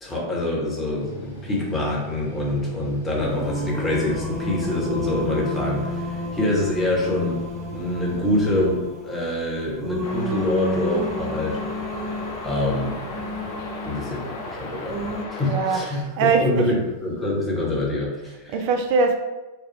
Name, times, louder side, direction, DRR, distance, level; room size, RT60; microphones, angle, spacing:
voice 1, 0.0-7.4 7.7-11.6 12.4-12.9 13.8-15.0 15.3-18.6, left 1 dB, 15° left, 1.2 m, -25 dB
Mechanical fan, 1.0-9.4, right 4 dB, 70° left, 1.2 m, -42 dB
Singing, 3.2-15.3, left 1 dB, 10° right, 0.7 m, -31 dB
sound 1, 10.0-15.9, left 3 dB, 50° left, 0.5 m, -36 dB
voice 2, 15.4-16.8 18.5-19.1, right 4 dB, 45° right, 0.4 m, -22 dB
4.5 x 2.3 x 3.1 m
figure-of-eight pair, 90°, 0 cm